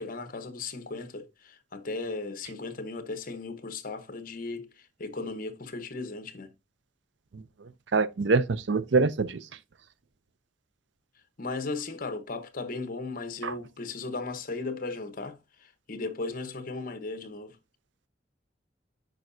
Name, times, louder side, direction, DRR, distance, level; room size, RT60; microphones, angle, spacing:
voice 1, 0.0-6.5 11.4-17.6, left 3 dB, 50° left, 1.0 m, -36 dB
voice 2, 7.9-9.4 13.4-13.5, right 4 dB, 70° right, 0.5 m, -24 dB
9.0 x 5.4 x 2.6 m
head